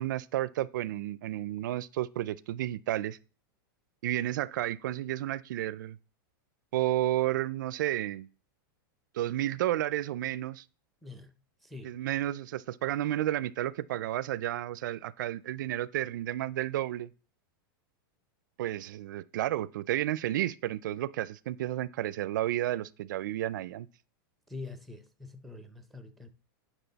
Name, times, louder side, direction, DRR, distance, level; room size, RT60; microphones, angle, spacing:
voice 1, 0.0-3.2 4.0-6.0 6.7-8.3 9.1-10.6 11.8-17.1 18.6-23.9, right 14 dB, 60° right, 0.4 m, -32 dB
voice 2, 11.0-11.3 11.6-12.0 24.5-26.3, left 3 dB, ahead, 0.5 m, -45 dB
10.0 x 6.1 x 4.0 m
supercardioid pair, 175°, 12 cm